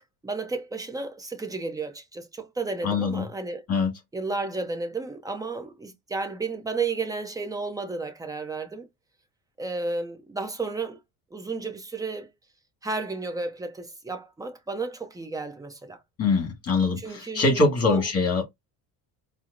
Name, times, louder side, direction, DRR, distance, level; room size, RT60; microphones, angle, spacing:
voice 1, 0.0-3.7 4.1-8.9 9.6-11.0 11.3-12.3 12.8-16.0 17.0-18.0, right 3 dB, 10° right, 0.6 m, -32 dB
voice 2, 2.8-3.2 3.7-3.9 16.2-18.4, left 3 dB, 35° left, 1.7 m, -23 dB
4.4 x 2.1 x 2.5 m
cardioid pair, 130°, 44 cm